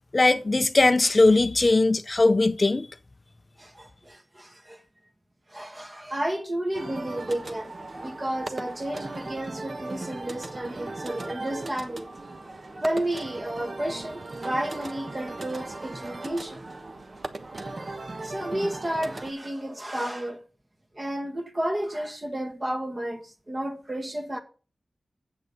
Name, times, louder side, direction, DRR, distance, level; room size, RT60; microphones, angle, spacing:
voice 1, 0.1-2.9, left 2 dB, 35° left, 0.5 m, -20 dB
voice 2, 3.6-4.8 5.5-12.1 12.8-16.6 18.2-20.4 20.9-24.4, right 1 dB, 25° right, 1.7 m, -32 dB
sound 1, 6.7-19.3, right 2 dB, 45° right, 1.1 m, -37 dB
9.1 x 8.0 x 5.3 m
wide cardioid pair, 90°, 0 cm